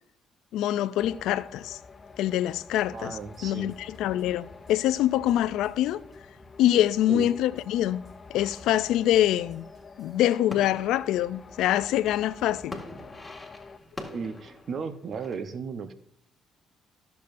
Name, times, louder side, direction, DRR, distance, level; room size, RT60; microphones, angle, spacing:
voice 1, 0.5-1.8 2.2-6.0 6.6-8.0 8.3-9.6 10.0-12.8, left 12 dB, 80° left, 0.4 m, -25 dB
sound 1, 1.0-13.8, left 4 dB, 35° left, 0.6 m, -48 dB
sound 2, 2.5-10.2, left 1 dB, 35° right, 3.9 m, -57 dB
voice 2, 2.9-3.7 7.1-7.3 14.1-15.9, right 5 dB, 55° right, 0.8 m, -35 dB
sound 3, 8.3-15.4, left 1 dB, 10° left, 1.9 m, -45 dB
14.0 x 6.9 x 2.6 m
supercardioid pair, 75°, 0 cm